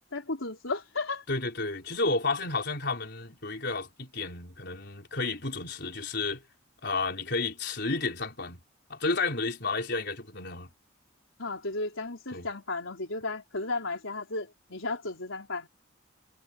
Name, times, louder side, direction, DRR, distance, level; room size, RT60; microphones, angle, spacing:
voice 1, 0.1-1.2 11.4-15.7, left 3 dB, 80° left, 4.2 m, -34 dB
voice 2, 1.3-6.4 6.8-8.6 8.9-10.7 12.3-12.5, left 3 dB, 55° left, 4.8 m, -31 dB
head